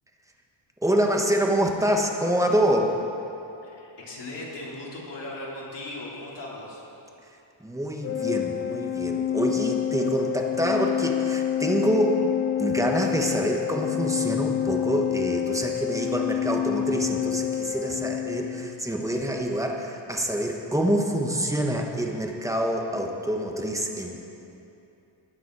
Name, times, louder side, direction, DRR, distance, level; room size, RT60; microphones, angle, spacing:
voice 1, 0.8-2.9 7.6-12.2 12.6-24.3, right 1 dB, 5° right, 1 dB, 1.2 m, -26 dB
voice 2, 3.6-6.8, left 2 dB, 60° left, -6 dB, 3.8 m, -38 dB
Organ, 8.0-18.8, left 10 dB, 30° left, 0.4 m, -28 dB
20.0 x 9.3 x 4.8 m, 2.8 s
wide cardioid pair, 150°, 48 cm